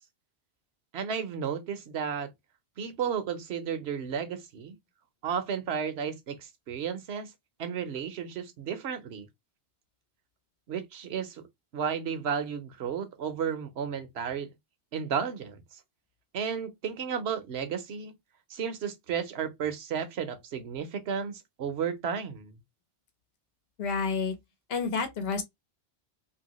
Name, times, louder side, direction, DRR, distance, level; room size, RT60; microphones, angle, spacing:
voice 1, 0.9-2.3 2.8-4.8 5.2-7.3 7.6-9.3 10.7-11.4 11.7-14.5 14.9-15.6 16.3-18.1 18.5-22.5, right 7 dB, 65° right, 1.0 m, -33 dB
voice 2, 23.8-24.3 24.7-25.4, left 5 dB, 65° left, 1.0 m, -29 dB
2.9 x 2.7 x 2.9 m
omnidirectional pair, 1.2 m